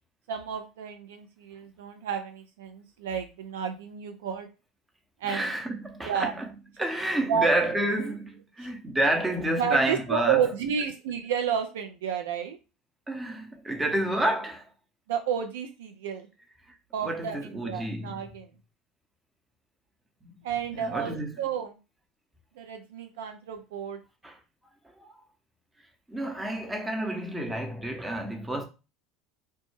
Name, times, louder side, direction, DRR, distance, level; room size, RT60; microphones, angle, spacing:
voice 1, 0.3-4.5 5.2-5.5 6.0-6.3 7.3-7.5 8.6-8.7 9.6-12.6 15.1-16.3 16.9-18.5 20.4-21.8 22.6-24.0, right 8 dB, 75° right, 0.3 m, -31 dB
voice 2, 5.2-6.5 6.8-10.5 13.1-14.7 16.7-16.8 17.0-18.2 20.2-20.4 20.7-21.3 24.2-24.4 25.0-25.1 26.1-28.6, right 1 dB, 10° right, 0.6 m, -29 dB
2.1 x 2.0 x 3.1 m
hypercardioid pair, 75°, 0 cm